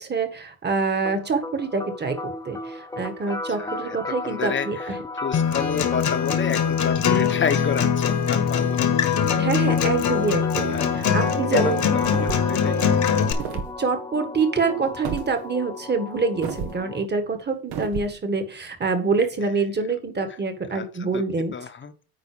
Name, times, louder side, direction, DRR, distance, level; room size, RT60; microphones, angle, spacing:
voice 1, 0.0-5.0 9.4-11.8 13.5-21.5, right 4 dB, 25° right, 8 dB, 1.7 m, -26 dB
sound 1, 1.0-17.0, left 2 dB, 10° left, 0.8 m, -34 dB
voice 2, 3.5-8.9 9.7-10.0 10.7-13.0 19.4-19.6 20.7-21.2 21.5-21.9, left 6 dB, 30° left, 8 dB, 1.1 m, -30 dB
Acoustic guitar, 5.3-13.3, left 7 dB, 45° left, 1.5 m, -22 dB
sound 2, 12.0-12.6 13.3-13.7 15.0-15.3 16.4-16.8 17.7-18.1, right 7 dB, 65° right, 1.4 m, -31 dB
9.7 x 4.0 x 5.1 m, 0.40 s
supercardioid pair, 95°, 41 cm